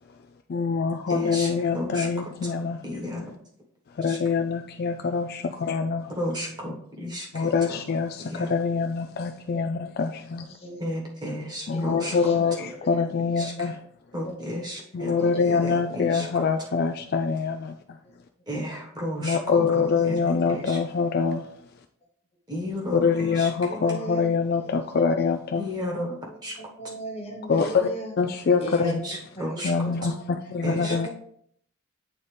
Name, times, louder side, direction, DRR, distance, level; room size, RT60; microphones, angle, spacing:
voice 1, 0.5-2.8 3.9-6.1 7.3-10.6 11.7-13.8 14.9-18.0 19.2-21.5 22.9-25.8 27.5-27.9 28.2-29.0 29.6-31.1, left 5 dB, 45° left, 0.3 m, -25 dB
voice 2, 1.1-1.5 1.7-2.1 2.8-3.2 4.1-4.2 6.2-7.5 8.3-8.5 10.8-12.1 13.4-13.5 14.1-15.3 15.9-16.2 18.5-20.8 22.5-23.0 23.4-23.5 25.6-26.6 28.8-29.7 30.6-30.9, equal, 20° right, 1.3 m, -32 dB
voice 3, 10.5-10.9 11.7-13.0 14.2-14.4 15.3-16.4 18.5-18.6 19.4-20.7 23.7-24.3 24.6-24.7 25.0-25.2 26.2-28.1 28.6-29.0 29.3-30.1 30.8-31.1, right 1 dB, 25° left, 1.2 m, -38 dB
8.7 x 4.0 x 3.3 m
head